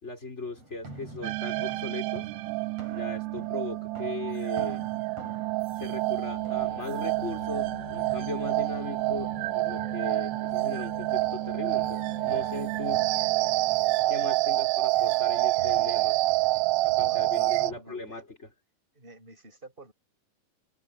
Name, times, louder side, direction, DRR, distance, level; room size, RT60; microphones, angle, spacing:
voice 1, 0.0-2.3 2.9-4.8 5.8-13.1 14.1-16.1 16.8-18.4, left 3 dB, 20° left, 5.0 m, -38 dB
sound 1, 0.6-17.8, right 2 dB, 45° right, 7.0 m, -48 dB
sound 2, 1.2-17.7, right 19 dB, 80° right, 1.7 m, -28 dB
sound 3, 3.8-14.7, left 6 dB, 50° left, 2.3 m, -48 dB
voice 2, 13.9-14.5 15.5-18.2 18.9-19.9, right 2 dB, 15° right, 7.1 m, -50 dB
omnidirectional pair, 3.9 m